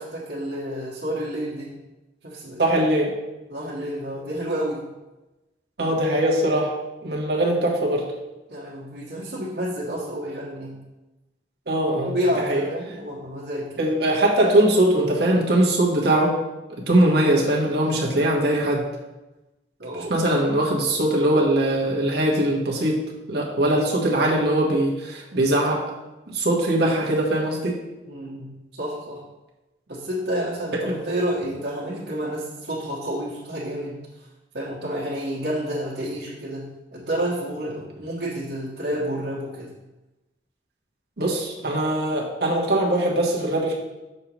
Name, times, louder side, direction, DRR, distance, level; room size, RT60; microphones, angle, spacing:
voice 1, 0.0-1.8 2.2-2.6 3.5-4.9 8.5-10.8 12.0-13.8 19.8-20.3 28.0-29.2 29.9-34.3 34.5-39.7, equal, 85° right, -8 dB, 1.5 m, -30 dB
voice 2, 2.6-3.1 5.8-6.7 7.0-8.1 11.7-12.1 12.5-12.6 13.8-16.3 16.7-18.8 20.1-23.0 23.3-25.8 26.3-27.7 30.9-31.0 41.2-43.7, right 1 dB, 65° right, -2 dB, 1.3 m, -21 dB
6.7 x 6.6 x 3.0 m, 1.1 s
head